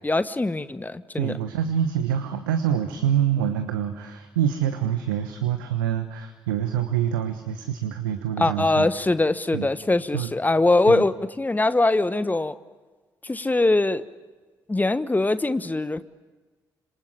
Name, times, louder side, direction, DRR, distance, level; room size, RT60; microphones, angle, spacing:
voice 1, 0.0-1.3 8.4-12.5 13.2-14.0 14.7-16.0, left 2 dB, 15° left, 14 dB, 1.2 m, -22 dB
voice 2, 1.2-8.9 9.5-9.7 10.1-10.3 10.9-11.0, right 9 dB, 75° right, 8 dB, 1.2 m, -26 dB
26.5 x 26.0 x 7.7 m, 1.3 s
figure-of-eight pair, 40°, 11 cm